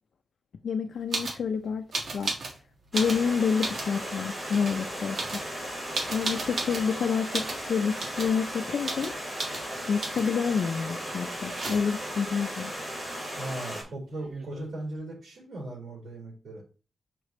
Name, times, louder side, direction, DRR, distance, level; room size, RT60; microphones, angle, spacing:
voice 1, 0.6-2.3 2.9-5.4 6.1-9.2 9.9-12.7, left 6 dB, 75° left, 0.5 m, -28 dB
sound 1, 1.1-1.4 1.9-2.6 2.9-3.9 4.5-4.8 5.1-6.9 7.3-7.6 8.0-8.4 8.8-9.1 9.4-9.6 10.0-10.4 11.3-12.1 13.9-14.0 14.1-14.7, right 3 dB, 60° right, 1.5 m, -34 dB
Stream, 2.9-13.8, equal, 20° right, 3.8 m, -36 dB
voice 2, 13.4-16.6, right 1 dB, 75° right, 3.6 m, -38 dB
6.5 x 6.0 x 3.1 m
wide cardioid pair, 165°, 0 cm